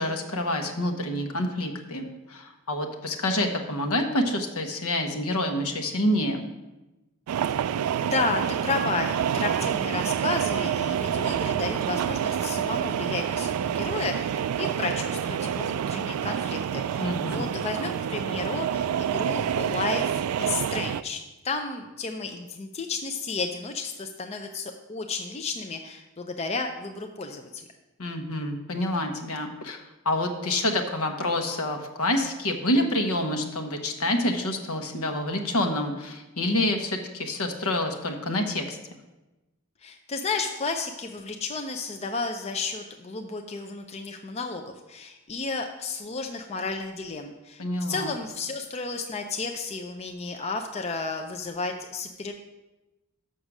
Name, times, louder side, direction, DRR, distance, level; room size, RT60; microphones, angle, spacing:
voice 1, 0.0-6.4 17.0-17.4 28.0-38.8 47.6-48.1, left 1 dB, 75° left, 5 dB, 1.0 m, -27 dB
sound 1, 7.3-21.0, right 9 dB, 80° right, 0.3 m, -28 dB
voice 2, 8.0-27.6 39.8-52.3, left 4 dB, 30° left, 5 dB, 0.4 m, -32 dB
6.6 x 6.4 x 6.0 m, 1.0 s
head